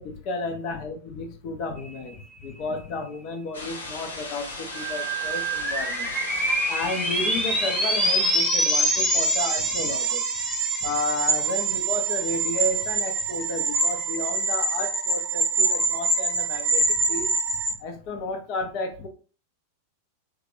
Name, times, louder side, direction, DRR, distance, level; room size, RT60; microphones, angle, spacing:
voice 1, 0.0-6.1 6.7-10.2 10.8-17.3 17.8-19.1, left 2 dB, 40° left, 4 dB, 0.8 m, -32 dB
sound 1, 3.5-8.5, left 2 dB, 70° left, 0.8 m, -37 dB
sound 2, 4.7-17.7, right 2 dB, 5° right, 1.0 m, -25 dB
3.4 x 2.5 x 3.3 m, 0.38 s
figure-of-eight pair, 90°, 0 cm